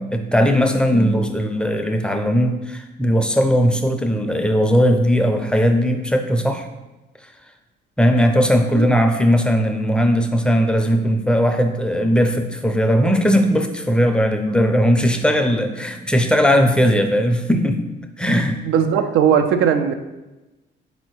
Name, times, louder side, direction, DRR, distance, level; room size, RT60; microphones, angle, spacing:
voice 1, 0.0-6.7 8.0-17.9 18.2-18.6, equal, 5° left, 5 dB, 0.4 m, -18 dB
voice 2, 18.6-19.9, right 8 dB, 80° right, 8 dB, 0.4 m, -18 dB
4.0 x 2.7 x 4.5 m, 1.1 s
cardioid pair, 90°, 20 cm